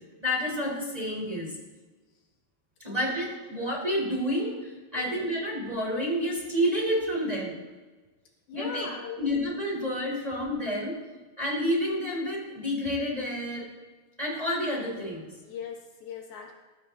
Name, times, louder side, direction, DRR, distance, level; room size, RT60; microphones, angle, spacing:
voice 1, 0.2-1.5 2.8-7.6 8.5-8.9 9.2-10.9 11.4-13.7 14.2-15.3, equal, 10° right, -3 dB, 3.6 m, -29 dB
voice 2, 2.9-3.2 4.9-5.2 8.5-9.2 15.4-16.5, left 5 dB, 80° left, 1 dB, 3.6 m, -39 dB
21.0 x 14.5 x 2.7 m, 1.3 s
omnidirectional pair, 4.3 m